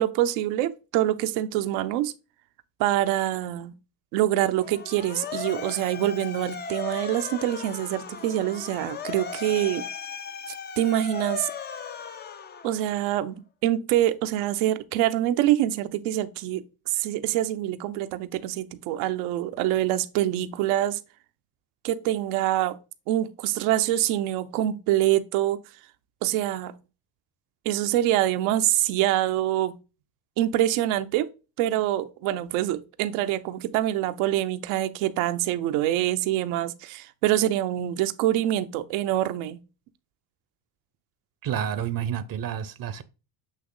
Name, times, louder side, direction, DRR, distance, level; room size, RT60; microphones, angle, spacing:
voice 1, 0.0-2.1 2.8-3.7 4.1-9.9 10.8-11.5 12.6-21.0 21.8-22.8 23.1-25.6 26.2-26.7 27.6-29.8 30.4-31.3 31.6-39.6, right 13 dB, 80° right, 0.8 m, -25 dB
Motor vehicle (road) / Siren, 4.5-13.1, left 6 dB, 20° left, 0.4 m, -37 dB
voice 2, 41.4-43.0, right 9 dB, 45° right, 0.7 m, -29 dB
8.4 x 3.1 x 3.8 m
supercardioid pair, 95°, 49 cm